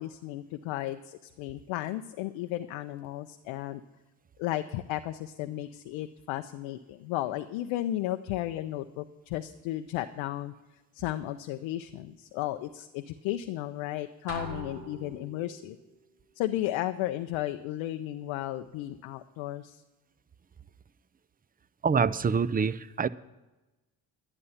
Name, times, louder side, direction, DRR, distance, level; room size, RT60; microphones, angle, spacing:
voice 1, 0.0-3.8 4.4-10.5 10.9-15.8 16.4-19.8, left 14 dB, 90° left, 0.6 m, -34 dB
sound 1, 14.3-15.7, right 1 dB, 60° right, 3.6 m, -41 dB
voice 2, 21.8-23.1, right 6 dB, 20° right, 0.5 m, -26 dB
11.5 x 11.0 x 5.6 m
hypercardioid pair, 45°, 46 cm